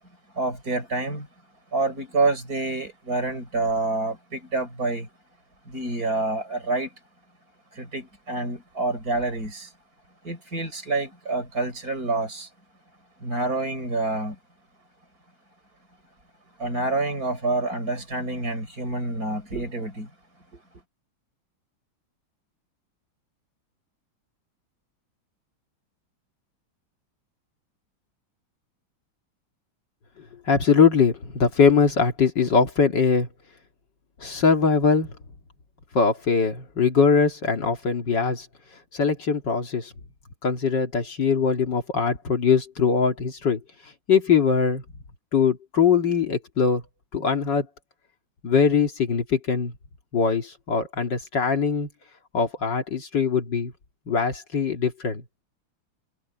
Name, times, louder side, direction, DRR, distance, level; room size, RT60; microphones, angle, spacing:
voice 1, 0.3-1.3 1.7-5.1 5.7-6.9 7.7-9.7 10.2-12.5 13.2-14.4 16.6-20.1 20.5-20.6, right 2 dB, 45° right, 6.4 m, -27 dB
voice 2, 30.5-33.3 34.2-35.1 35.9-38.5 38.9-39.9 40.4-43.6 44.1-44.8 45.3-46.8 47.1-47.7 48.4-49.7 50.1-51.9 52.3-53.7 54.1-55.2, left 5 dB, 60° left, 2.7 m, -21 dB
omnidirectional pair, 2.3 m